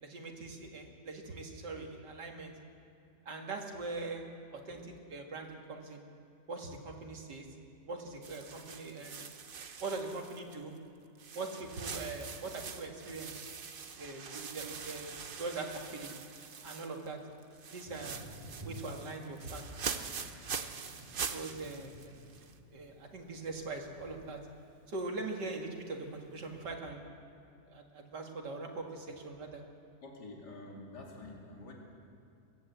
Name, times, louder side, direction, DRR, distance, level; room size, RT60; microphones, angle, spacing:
voice 1, 0.0-2.5 3.3-4.2 4.5-6.0 6.5-7.5 7.9-9.3 9.8-10.7 11.3-13.4 14.0-15.1 15.4-16.1 16.6-17.2 17.7-18.3 18.6-19.6 21.3-22.1 22.7-24.4 24.9-27.0 27.7-29.6, right 3 dB, 80° right, 2 dB, 2.7 m, -41 dB
sound 1, 8.2-10.8 11.2-17.1 17.4-22.6, right 6 dB, 45° right, 0.7 m, -43 dB
Thunder, 17.8-26.6, left 1 dB, 25° right, 2.1 m, -54 dB
voice 2, 30.0-31.7, left 2 dB, 70° left, -1 dB, 3.4 m, -48 dB
22.5 x 15.0 x 8.1 m, 2.5 s
omnidirectional pair, 1.8 m